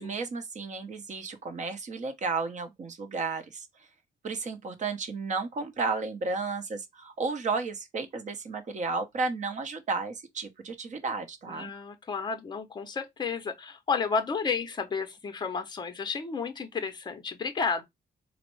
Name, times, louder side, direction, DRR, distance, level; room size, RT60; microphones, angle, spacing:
voice 1, 0.0-3.9 4.2-11.7, right 4 dB, 40° right, 0.7 m, -33 dB
voice 2, 11.5-17.8, left 5 dB, 25° left, 0.6 m, -32 dB
4.3 x 2.0 x 2.9 m
wide cardioid pair, 175°, 19 cm